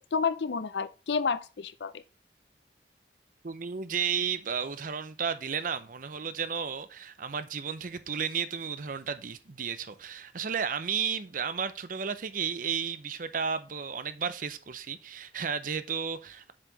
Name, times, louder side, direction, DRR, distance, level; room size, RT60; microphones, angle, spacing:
voice 1, 0.0-2.0, left 5 dB, 75° left, 0.5 m, -30 dB
voice 2, 3.4-16.5, right 6 dB, 50° right, 0.6 m, -33 dB
7.4 x 4.8 x 3.9 m
head